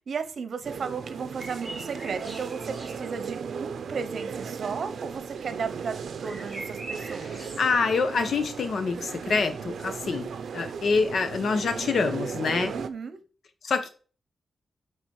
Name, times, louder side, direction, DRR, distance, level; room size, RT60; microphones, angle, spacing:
voice 1, 0.1-5.9 6.2-7.5 12.7-13.2, right 5 dB, 65° right, 1.1 m, -34 dB
sound 1, 0.6-12.9, right 6 dB, 80° right, 0.6 m, -36 dB
sound 2, 1.4-3.3 6.2-7.7, right 2 dB, 5° right, 3.4 m, -42 dB
voice 2, 7.2-12.7 13.6-13.9, left 4 dB, 70° left, 1.1 m, -26 dB
9.7 x 4.0 x 4.5 m
wide cardioid pair, 110°, 0 cm